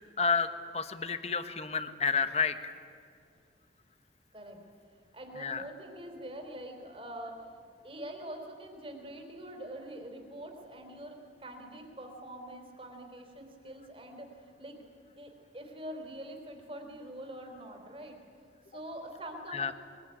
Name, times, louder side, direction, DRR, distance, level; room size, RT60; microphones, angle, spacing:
voice 1, 0.2-2.7 5.4-5.6 19.5-19.7, left 5 dB, 35° left, 10 dB, 1.3 m, -30 dB
voice 2, 4.3-4.6 4.9-14.9 15.2-18.2 18.7-19.7, right 1 dB, 30° right, 3 dB, 3.8 m, -45 dB
23.0 x 21.0 x 10.0 m, 2.5 s
head